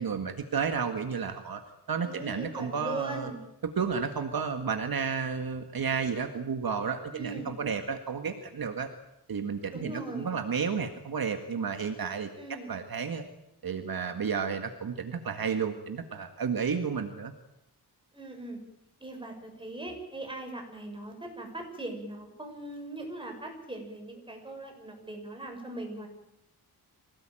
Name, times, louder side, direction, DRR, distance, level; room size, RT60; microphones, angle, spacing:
voice 1, 0.0-1.6 1.9-3.3 3.8-8.9 9.3-13.3 13.6-17.3, right 6 dB, 60° right, 6 dB, 1.9 m, -32 dB
voice 2, 2.0-3.4 7.1-7.6 9.7-10.3 12.4-12.7 18.1-18.6 19.0-26.1, right 2 dB, 10° right, 3 dB, 7.0 m, -40 dB
25.5 x 18.0 x 9.0 m, 0.85 s
wide cardioid pair, 130°, 40 cm